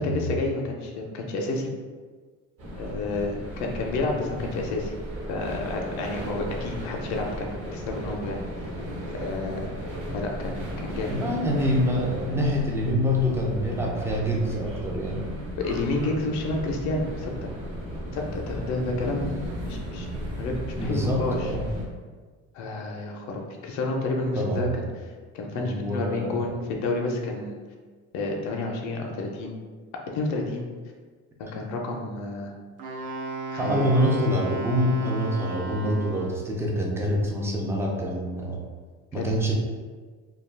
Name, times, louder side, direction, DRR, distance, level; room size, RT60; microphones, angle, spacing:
voice 1, 0.0-1.7 2.8-4.9 5.3-8.4 9.1-9.7 10.1-11.1 15.6-17.5 18.1-21.4 22.5-24.9 25.3-27.6 28.1-29.5 30.1-30.6 31.4-32.5 33.5-33.9 39.1-39.3, left 2 dB, 60° left, 1 dB, 0.5 m, -30 dB
sound 1, 2.6-21.9, equal, 45° right, 1.1 m, -35 dB
voice 2, 11.1-15.3 20.8-21.7 24.4-24.7 25.6-26.5 33.6-38.6 39.1-39.5, equal, 10° right, -1 dB, 0.3 m, -26 dB
Wind instrument woodwind instrument, 32.8-36.5, right 2 dB, 70° right, 0.6 m, -34 dB
2.3 x 2.3 x 3.2 m, 1.5 s
cardioid pair, 130°, 32 cm